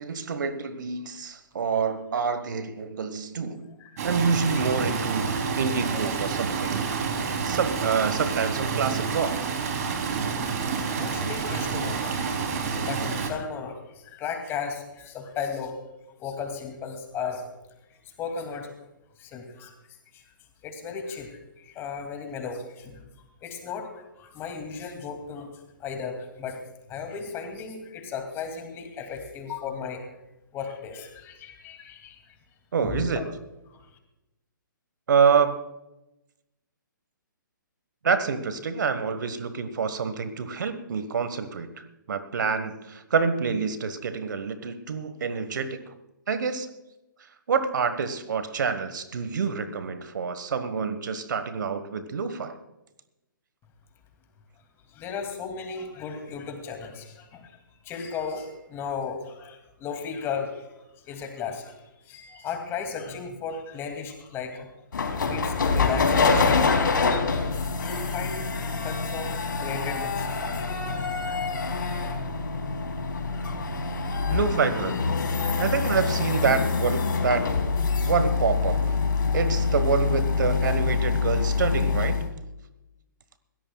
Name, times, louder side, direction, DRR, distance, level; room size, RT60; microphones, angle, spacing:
voice 1, 0.0-3.7 4.0-9.5 32.7-33.3 35.1-35.6 38.0-41.7 42.1-45.8 46.3-46.7 47.5-52.5 74.3-75.0 75.6-77.4 78.0-78.8 79.3-82.1, right 5 dB, 65° right, 11 dB, 1.4 m, -27 dB
Stream, 4.0-13.3, right 5 dB, 50° right, 3.2 m, -28 dB
voice 2, 10.7-12.3 12.8-15.8 16.2-17.4 17.9-18.7 19.2-19.7 20.1-20.2 20.6-23.0 23.4-25.5 25.8-26.6 26.9-30.0 30.5-32.3 32.8-33.2 33.7-33.8 54.9-64.7 65.1-66.9 67.8-68.5 68.8-70.7 71.2-71.4, left 6 dB, 20° left, 5 dB, 2.5 m, -35 dB
sound 1, 64.9-82.3, left 4 dB, 70° left, 2.7 m, -25 dB
21.5 x 16.5 x 2.3 m, 0.95 s
figure-of-eight pair, 130°, 11 cm